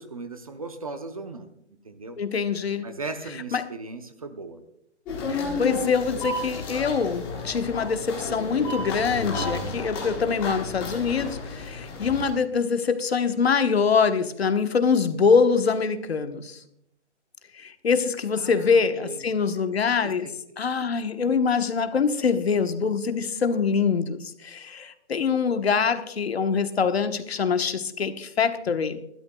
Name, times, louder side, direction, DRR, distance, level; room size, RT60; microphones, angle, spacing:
voice 1, 0.0-1.5 1.8-2.2 2.8-4.6 18.3-19.2 20.0-20.3, right 3 dB, 30° right, 0.7 m, -37 dB
voice 2, 2.2-2.9 3.5-3.6 5.3-16.6 17.6-20.3 20.6-29.0, left 5 dB, 60° left, 1.2 m, -24 dB
sound 1, 5.0-12.3, left 3 dB, 10° left, 1.3 m, -32 dB
22.0 x 12.5 x 2.3 m
hypercardioid pair, 175°, 35 cm